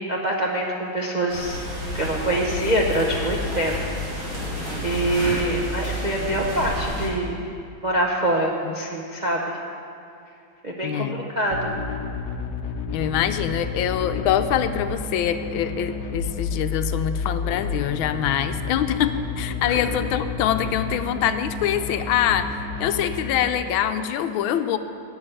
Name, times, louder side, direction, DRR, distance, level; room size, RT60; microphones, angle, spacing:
voice 1, 0.0-1.6 1.9-3.7 4.8-7.4 7.8-9.4 10.6-11.1 11.4-11.7 19.7-19.8, right 1 dB, 50° right, -2 dB, 0.5 m, -24 dB
sound 1, 1.3-7.1, equal, 85° right, 4.9 m, -30 dB
voice 2, 10.8-11.2 12.9-22.5 22.8-24.8, left 10 dB, 80° left, 10 dB, 1.4 m, -24 dB
sound 2, 11.5-23.5, left 4 dB, 65° left, 1.1 m, -30 dB
11.0 x 7.2 x 8.8 m, 2.5 s
omnidirectional pair, 2.2 m